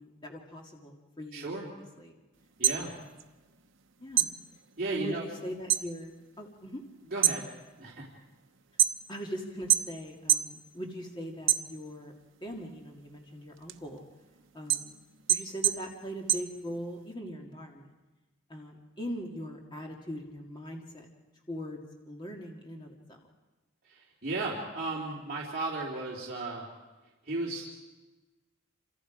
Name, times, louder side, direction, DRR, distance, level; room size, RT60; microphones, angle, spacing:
voice 1, 0.0-1.7 2.0-2.1 2.7-3.1 4.0-4.4 4.9-6.1 6.4-6.8 9.1-12.1 12.4-14.0 14.5-15.0 15.3-17.8 18.5-21.1 21.5-21.8 22.1-23.2, equal, 20° left, 0 dB, 2.0 m, -41 dB
voice 2, 1.3-1.7 2.6-2.9 4.8-5.3 7.1-7.5 7.8-8.1 23.9-26.7 27.3-27.6, right 2 dB, 40° right, -6 dB, 3.4 m, -34 dB
sound 1, 2.4-3.8 4.1-5.9 6.3-6.7 7.1-9.3 9.7-10.6 10.9-12.1 12.6-17.1, right 12 dB, 60° right, 0.9 m, -28 dB
28.0 x 26.5 x 5.0 m, 1.2 s
head